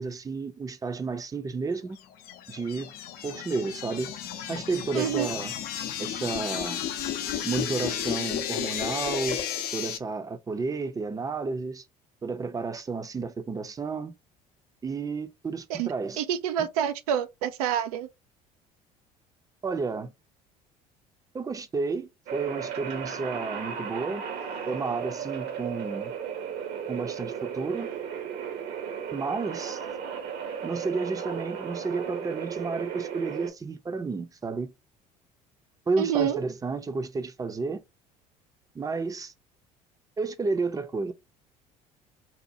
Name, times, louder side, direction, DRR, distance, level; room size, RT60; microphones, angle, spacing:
voice 1, 0.0-2.0 2.5-2.9 3.2-4.1 4.5-5.6 6.0-6.8 7.4-9.4 9.7-11.8 12.2-14.1 14.8-16.2 19.6-20.1 21.3-24.3 24.7-26.1 26.9-27.9 29.1-29.8 30.6-34.7 35.9-37.8 38.7-39.3 40.2-41.1, right 4 dB, 20° right, 0.6 m, -31 dB
sound 1, 2.0-10.0, left 9 dB, 55° left, 0.6 m, -33 dB
voice 2, 4.9-5.3 15.7-18.1 36.0-36.4, right 9 dB, 75° right, 0.4 m, -28 dB
sound 2, 22.3-33.5, right 7 dB, 60° right, 1.0 m, -35 dB
4.2 x 2.2 x 2.7 m
hypercardioid pair, 65°, 19 cm